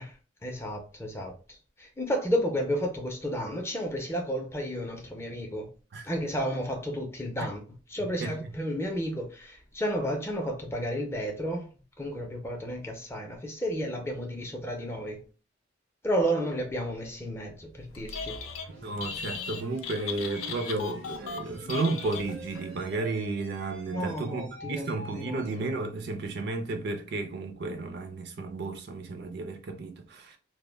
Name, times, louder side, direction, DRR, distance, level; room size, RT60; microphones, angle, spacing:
voice 1, 0.0-5.7 6.0-7.6 7.9-11.7 12.0-15.2 16.0-18.4 23.9-25.4, equal, 15° left, 0.4 m, -32 dB
Telephone, 17.9-18.7 19.0-22.7, left 6 dB, 85° left, 0.4 m, -37 dB
sound 1, 17.9-25.7, right 1 dB, 75° right, 0.7 m, -47 dB
voice 2, 18.7-30.4, right 3 dB, 55° right, 0.4 m, -33 dB
2.1 x 2.1 x 3.2 m
head